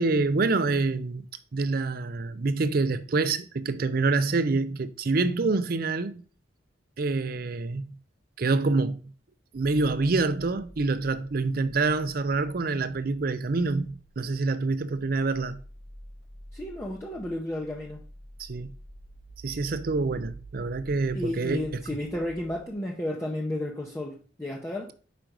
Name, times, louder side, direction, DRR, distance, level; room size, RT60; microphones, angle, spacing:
voice 1, 0.0-6.2 7.0-8.0 8.4-9.1 9.5-15.6 18.4-18.7 19.4-22.0, right 3 dB, 50° right, 0.5 m, -26 dB
sound 1, 9.5-22.7, right 2 dB, 70° left, 3.0 m, -48 dB
voice 2, 16.5-18.0 21.1-24.9, left 1 dB, 15° left, 0.7 m, -32 dB
5.1 x 5.0 x 4.5 m
head